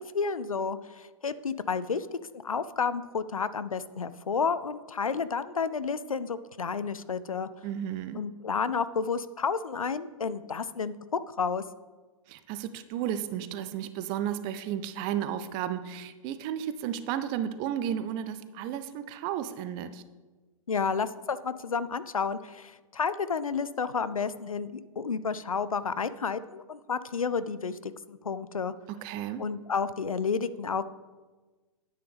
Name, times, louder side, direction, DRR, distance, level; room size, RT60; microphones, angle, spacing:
voice 1, 0.1-2.1 2.4-7.5 8.1-11.6 20.7-28.7 29.4-30.8, left 5 dB, 75° left, 15 dB, 0.5 m, -31 dB
voice 2, 7.6-8.2 12.3-20.0 29.0-29.4, right 10 dB, 25° right, 11 dB, 0.5 m, -33 dB
9.5 x 9.3 x 3.5 m, 1.3 s
figure-of-eight pair, 105°, 18 cm